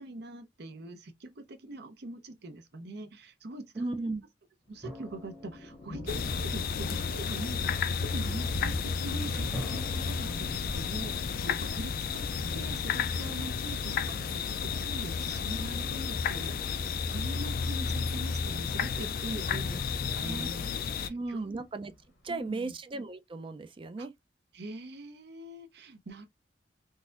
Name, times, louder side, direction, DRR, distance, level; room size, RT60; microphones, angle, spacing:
voice 1, 0.0-3.9 4.7-12.3 12.5-19.7 20.1-21.6 22.3-22.7 24.0-24.1 24.5-26.3, right 2 dB, 65° right, 0.7 m, -43 dB
voice 2, 3.8-4.2 19.5-19.8 20.1-20.5 21.1-21.9 22.2-24.1, right 3 dB, 30° right, 0.4 m, -36 dB
Thunder, 4.7-22.6, left 1 dB, 80° left, 1.1 m, -47 dB
sound 1, 4.8-7.2 9.5-12.4, left 1 dB, 10° right, 0.9 m, -46 dB
sound 2, 6.1-21.1, left 6 dB, 55° left, 0.4 m, -32 dB
3.9 x 2.6 x 2.4 m
head